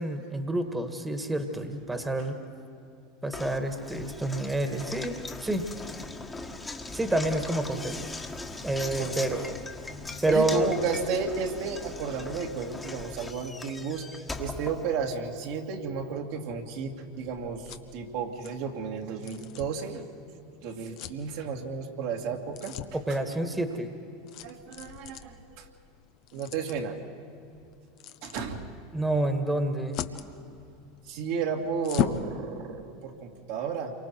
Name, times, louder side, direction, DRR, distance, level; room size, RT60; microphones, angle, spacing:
voice 1, 0.0-2.4 3.2-5.7 6.9-8.0 8.6-9.5 10.2-10.7 22.9-24.0 28.9-30.0, right 1 dB, 10° right, 7 dB, 1.8 m, -28 dB
Knock, 3.3-15.5, left 3 dB, 15° left, 1.6 m, -40 dB
voice 2, 10.0-20.0 20.6-22.7 23.1-23.2 24.4-25.7 26.3-27.0 28.2-28.6 31.1-33.9, right 5 dB, 60° right, 1 dB, 2.3 m, -33 dB
sound 1, 16.0-32.3, left 11 dB, 50° left, 1.0 m, -40 dB
28.5 x 24.0 x 4.6 m, 2.5 s
hypercardioid pair, 85°, 0 cm